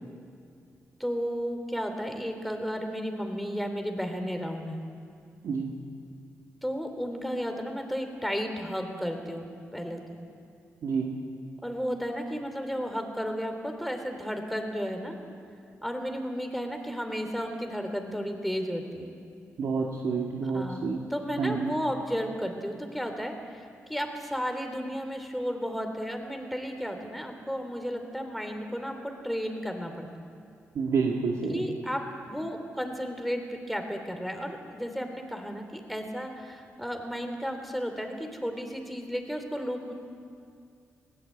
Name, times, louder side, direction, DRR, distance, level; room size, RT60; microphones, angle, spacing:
voice 1, 1.0-4.8 6.6-9.5 9.7-10.0 11.6-15.2 15.8-19.1 20.4-30.1 31.5-32.0 32.3-39.9, equal, ahead, 5 dB, 3.3 m, -33 dB
voice 2, 5.4-5.8 10.8-11.2 19.6-21.0 21.4-21.7 30.7-31.6, right 5 dB, 75° right, -1 dB, 2.1 m, -28 dB
21.0 x 16.5 x 8.6 m, 2.4 s
cardioid pair, 70°, 5 cm